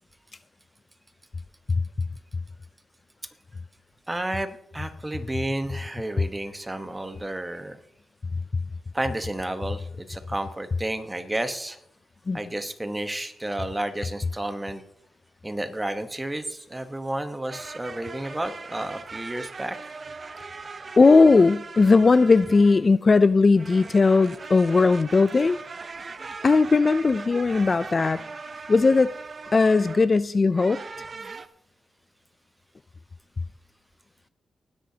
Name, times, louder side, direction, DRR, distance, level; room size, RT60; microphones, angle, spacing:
voice 1, 4.1-7.8 8.9-11.8 12.3-14.8 15.4-19.9, right 1 dB, 15° right, 8 dB, 1.0 m, -31 dB
sound 1, 17.5-23.0 23.6-30.1 30.5-31.5, right 4 dB, 35° right, 0.6 m, -40 dB
voice 2, 21.0-25.6 26.4-28.2 28.7-29.1 29.5-30.8, left 4 dB, 30° left, 14 dB, 0.3 m, -18 dB
19.0 x 10.5 x 2.8 m, 0.75 s
wide cardioid pair, 135°, 0 cm